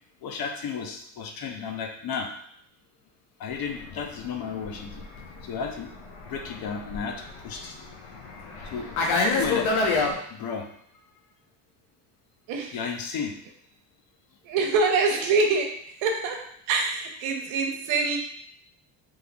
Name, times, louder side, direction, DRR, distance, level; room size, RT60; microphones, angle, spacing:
voice 1, 0.2-2.3 3.4-5.0 5.4-5.9 6.3-7.7 8.7-9.7 10.3-10.7 12.7-13.4, left 6 dB, 45° left, 4 dB, 0.6 m, -33 dB
Fixed-wing aircraft airplane, 3.6-10.1, left 3 dB, 75° left, 0.9 m, -29 dB
voice 2, 14.4-15.7 16.0-16.4 16.7-18.2, right 4 dB, 70° right, 3 dB, 0.8 m, -24 dB
3.7 x 3.1 x 2.2 m, 0.67 s
supercardioid pair, 95°, 50 cm